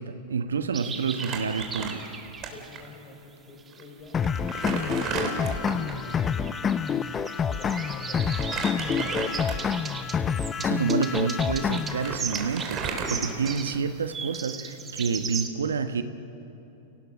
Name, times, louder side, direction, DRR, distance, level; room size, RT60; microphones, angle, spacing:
voice 1, 0.0-2.0 10.6-16.0, right 5 dB, 85° right, 9 dB, 1.1 m, -29 dB
sound 1, 0.7-2.9 3.6-15.5, right 5 dB, 20° right, 1.7 m, -38 dB
Crumpling crinkling, 1.1-2.5 2.8-2.9 3.7-3.8 4.2-6.0 8.2-9.8 10.4-10.6 11.5-11.6 11.8-13.9, right 5 dB, 40° right, 3.7 m, -34 dB
voice 2, 2.5-4.2 4.7-6.5 7.5-9.8 13.1-13.3, left 3 dB, 45° left, 3 dB, 5.2 m, -46 dB
sound 2, 4.1-12.1, left 7 dB, 25° left, 0.7 m, -28 dB
29.5 x 18.0 x 6.4 m, 2.9 s
hypercardioid pair, 100°, 0 cm